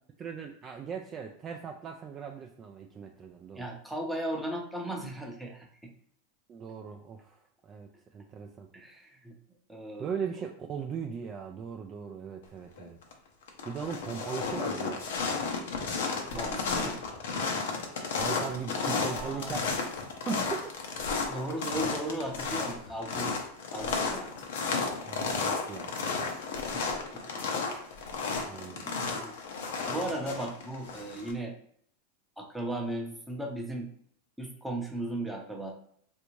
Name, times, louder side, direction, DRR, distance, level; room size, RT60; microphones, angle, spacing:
voice 1, 0.2-3.6 6.5-8.7 10.0-13.0 13.7-15.1 18.2-19.6 20.2-20.7 25.1-25.9 28.5-28.8, right 6 dB, 30° right, 3 dB, 0.3 m, -38 dB
voice 2, 3.5-5.9 8.7-9.4 9.7-10.1 16.3-17.0 18.8-19.8 21.3-23.5 23.7-24.3 26.6-26.8 27.1-27.4 28.8-29.3 29.9-31.6 32.4-33.9 34.4-35.7, right 1 dB, 5° right, 0 dB, 0.7 m, -36 dB
sound 1, 12.8-13.1 13.4-31.3, left 4 dB, 80° left, 0.7 m, -33 dB
3.4 x 2.6 x 3.0 m, 0.64 s
supercardioid pair, 130°, 0 cm